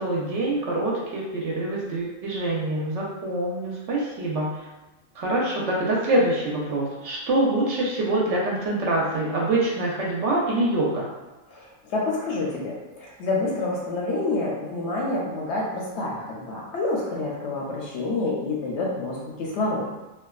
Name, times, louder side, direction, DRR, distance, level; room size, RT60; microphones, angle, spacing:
voice 1, 0.0-4.7 5.1-11.1, right 2 dB, 70° right, -4 dB, 0.8 m, -25 dB
voice 2, 11.5-19.9, left 2 dB, 65° left, -4 dB, 0.8 m, -28 dB
2.5 x 2.2 x 2.3 m, 1.1 s
omnidirectional pair, 1.4 m